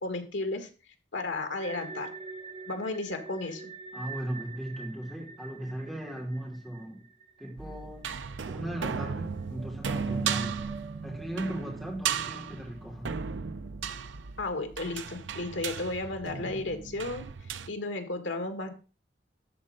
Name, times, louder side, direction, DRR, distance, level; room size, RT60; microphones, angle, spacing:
voice 1, 0.0-0.7 1.1-2.1 2.7-3.7 14.4-17.3 17.7-18.8, left 2 dB, 90° left, 1.7 m, -33 dB
sound 1, 1.6-8.4 8.7-8.8 9.4-14.7, right 4 dB, 30° right, 0.9 m, -46 dB
voice 2, 3.9-7.0 7.4-8.2 8.5-10.6 11.0-13.1, right 1 dB, ahead, 3.0 m, -37 dB
sound 2, 7.6-17.7, right 6 dB, 85° right, 0.6 m, -35 dB
13.0 x 4.3 x 5.2 m
head